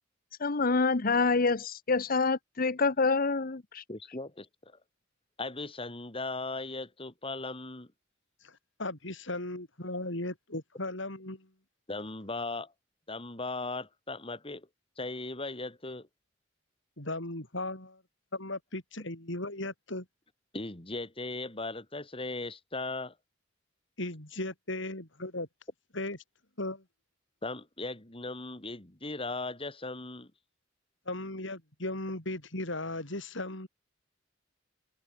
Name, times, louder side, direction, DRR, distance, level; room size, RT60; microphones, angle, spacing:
voice 1, 0.4-3.8, left 4 dB, 50° left, 1.0 m, -27 dB
voice 2, 3.9-4.8 5.4-7.9 11.9-12.7 13.1-14.7 15.0-16.1 20.5-23.1 27.4-30.3, left 3 dB, 30° left, 3.0 m, -38 dB
voice 3, 8.4-11.5 17.0-18.0 18.3-20.0 24.0-25.5 25.9-26.2 26.6-26.8 31.1-33.7, left 2 dB, 65° left, 6.5 m, -37 dB
head